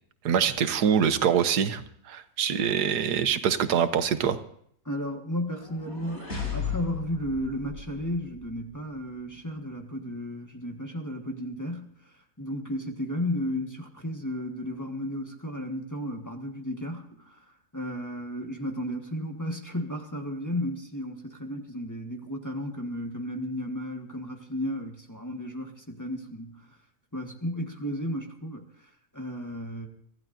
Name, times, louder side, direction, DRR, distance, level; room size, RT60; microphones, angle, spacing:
voice 1, 0.2-4.4, right 8 dB, 85° right, 10 dB, 1.5 m, -24 dB
voice 2, 4.8-26.8 27.1-29.9, equal, 10° left, 2 dB, 1.4 m, -34 dB
sound 1, 5.4-8.6, left 5 dB, 40° left, 5.2 m, -36 dB
24.5 x 15.0 x 2.6 m, 0.67 s
omnidirectional pair, 1.7 m